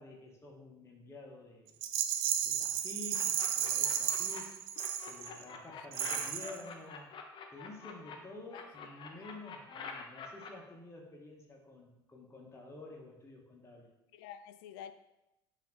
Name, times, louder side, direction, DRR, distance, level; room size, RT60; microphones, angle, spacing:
voice 1, 0.0-1.7 2.4-4.6 5.1-7.2 7.5-13.9, left 2 dB, 20° left, -1 dB, 1.7 m, -50 dB
Rattle, 1.8-5.4 5.9-6.6, right 10 dB, 60° right, 0.5 m, -33 dB
sound 1, 3.1-4.4 4.8-8.2 8.5-10.5, left 6 dB, 35° left, 1.0 m, -46 dB
voice 2, 5.0-5.4 5.7-5.9 8.5-8.6 14.1-14.9, left 9 dB, 60° left, 10 dB, 0.5 m, -49 dB
8.1 x 3.3 x 4.3 m, 0.90 s
figure-of-eight pair, 65°, 13 cm